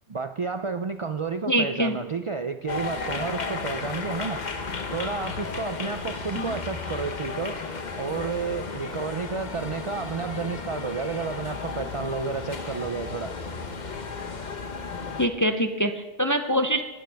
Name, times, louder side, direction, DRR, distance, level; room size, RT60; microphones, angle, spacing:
voice 1, 0.1-4.4 4.9-7.6 8.0-13.3, right 4 dB, 55° right, 9 dB, 0.3 m, -31 dB
voice 2, 1.5-2.0 6.3-6.6 15.2-16.8, equal, 25° left, 7 dB, 0.4 m, -24 dB
sound 1, 2.7-15.3, left 4 dB, 40° left, 1.0 m, -34 dB
19.5 x 11.5 x 3.5 m, 1.1 s
omnidirectional pair, 1.3 m